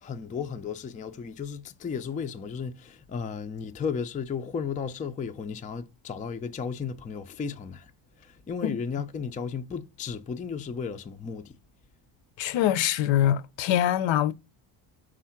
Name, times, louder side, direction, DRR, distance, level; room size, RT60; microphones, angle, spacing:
voice 1, 0.0-7.9 8.2-11.5, left 6 dB, 20° left, 0.3 m, -34 dB
voice 2, 12.4-14.3, left 11 dB, 65° left, 0.6 m, -24 dB
5.0 x 3.6 x 5.7 m
cardioid pair, 120°, 50 cm